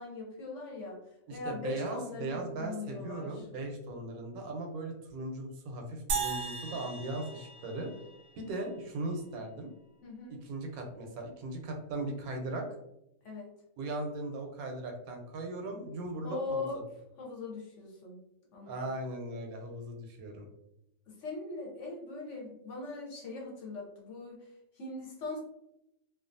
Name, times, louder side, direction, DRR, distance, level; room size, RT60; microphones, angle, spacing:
voice 1, 0.0-3.5 10.0-10.4 13.2-13.5 16.2-16.8 17.2-18.2 18.5-18.9 21.1-25.4, left 3 dB, 65° left, -2 dB, 0.9 m, -40 dB
voice 2, 1.3-7.9 8.4-9.7 10.4-12.7 13.8-16.7 18.7-20.5, right 2 dB, 85° right, 3 dB, 1.1 m, -38 dB
sound 1, 6.1-8.5, right 5 dB, 60° right, 0.7 m, -37 dB
2.6 x 2.3 x 2.5 m, 0.85 s
omnidirectional pair, 1.5 m